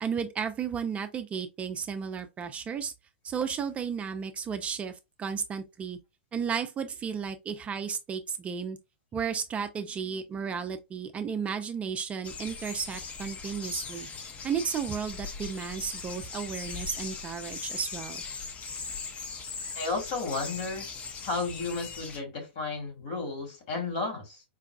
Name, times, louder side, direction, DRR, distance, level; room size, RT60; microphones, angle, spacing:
voice 1, 0.0-2.9 3.2-6.0 6.3-8.8 9.1-14.1 14.4-18.2, right 6 dB, 20° right, 0.3 m, -33 dB
sound 1, 12.2-22.2, left 5 dB, 25° left, 0.6 m, -39 dB
voice 2, 19.8-20.9 21.2-24.4, left 3 dB, 55° left, 1.7 m, -33 dB
4.6 x 2.3 x 2.2 m
figure-of-eight pair, 95°, 6 cm